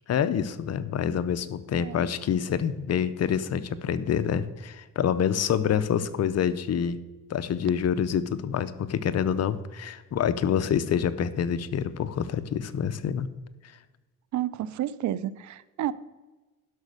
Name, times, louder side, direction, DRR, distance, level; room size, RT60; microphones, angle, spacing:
voice 1, 0.1-7.0 7.3-13.3, left 8 dB, 55° left, 13 dB, 0.8 m, -27 dB
voice 2, 1.7-2.0 14.3-15.9, right 12 dB, 70° right, 18 dB, 0.6 m, -31 dB
11.0 x 6.2 x 6.5 m, 1.2 s
cardioid pair, 90°, 30 cm